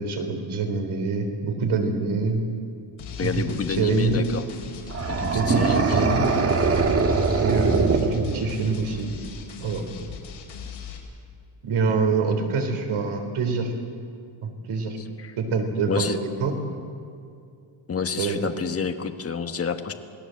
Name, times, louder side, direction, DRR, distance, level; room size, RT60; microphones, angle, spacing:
voice 1, 0.0-2.4 3.2-3.4 3.8-4.2 5.3-5.6 5.9-6.3 7.4-9.1 9.6-9.8 11.6-13.7 14.4-15.0 15.4-16.5 18.2-18.5, right 4 dB, 70° right, 4 dB, 3.9 m, -25 dB
sound 1, 3.0-11.0, left 6 dB, 65° left, 4.7 m, -40 dB
voice 2, 3.2-4.4 5.1-6.1 15.2-15.3 15.9-16.2 17.9-19.9, left 6 dB, 30° left, 7 dB, 1.3 m, -29 dB
sound 2, 4.9-8.8, right 4 dB, 30° right, 1.5 m, -22 dB
28.0 x 18.5 x 7.8 m, 2.4 s
cardioid pair, 165°, 50 cm